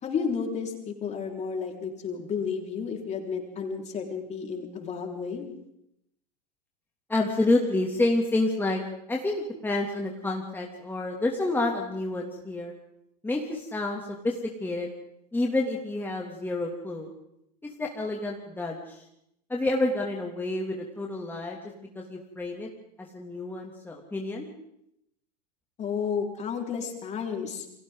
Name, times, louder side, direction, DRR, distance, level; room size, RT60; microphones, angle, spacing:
voice 1, 0.0-5.5 25.8-27.7, left 6 dB, 35° left, 1 dB, 4.8 m, -32 dB
voice 2, 7.1-8.8 9.1-9.3 9.6-12.7 13.2-14.9 15.3-17.1 17.6-19.0 19.5-22.7 23.0-24.5, left 2 dB, 10° left, -1 dB, 2.7 m, -29 dB
29.5 x 23.5 x 4.0 m, 0.78 s
hypercardioid pair, 85°, 21 cm